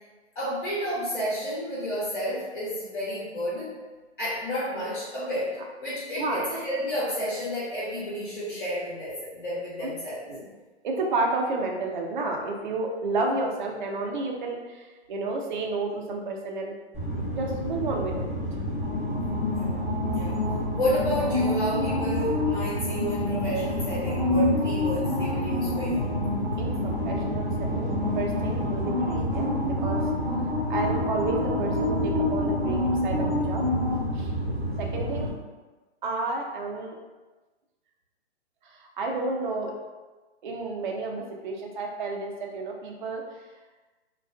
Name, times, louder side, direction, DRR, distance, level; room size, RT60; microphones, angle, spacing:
voice 1, 0.3-3.7 4.2-5.5 5.8-10.2 19.5-19.8 20.1-20.4 20.8-26.1, equal, 45° left, -8 dB, 1.0 m, -31 dB
voice 2, 6.2-6.5 9.8-9.9 10.3-10.5 10.8-16.7 17.3-18.3 26.6-30.0 30.7-33.6 34.1-34.3 34.8-35.3 36.0-37.0 38.6-39.7 40.4-43.2, right 3 dB, 45° right, 1 dB, 0.4 m, -31 dB
sound 1, 16.9-35.3, left 1 dB, 5° right, 0.7 m, -27 dB
2.4 x 2.2 x 2.4 m, 1.2 s
hypercardioid pair, 145°, 34 cm